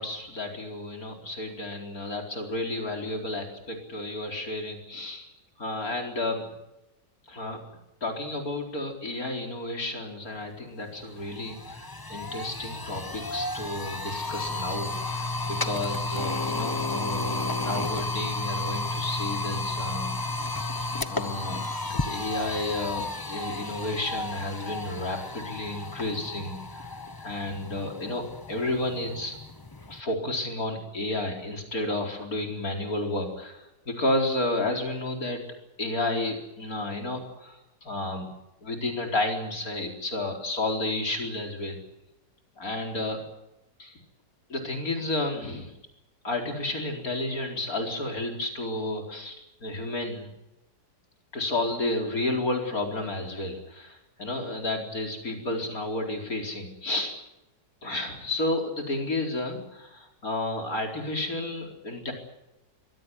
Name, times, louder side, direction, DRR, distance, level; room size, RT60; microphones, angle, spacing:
voice 1, 0.0-5.3 5.6-6.4 7.3-7.6 8.0-11.8 12.1-20.1 21.0-21.6 21.9-26.8 27.2-29.4 29.9-35.4 35.8-38.3 38.6-41.8 42.6-43.2 43.8-43.9 44.5-45.7 46.2-50.3 51.3-57.1 57.8-62.1, left 2 dB, 50° left, 2 dB, 4.9 m, -31 dB
sound 1, 10.6-10.7 11.0-30.0, left 2 dB, 20° left, 0.7 m, -33 dB
24.0 x 17.5 x 9.8 m, 0.92 s
omnidirectional pair, 1.9 m